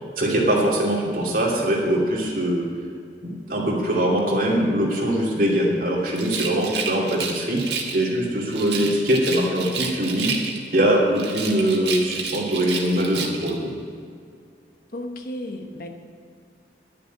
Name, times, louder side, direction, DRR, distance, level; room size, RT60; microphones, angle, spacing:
voice 1, 0.2-2.6 3.2-7.6 7.9-10.3 10.7-13.6, right 1 dB, 50° right, -3 dB, 2.7 m, -22 dB
Rattle, 6.1-8.1 8.5-10.8 11.1-13.6, right 5 dB, 80° right, 1.6 m, -30 dB
voice 2, 14.9-15.9, left 1 dB, 55° left, 4 dB, 1.1 m, -34 dB
11.0 x 6.8 x 9.3 m, 2.2 s
head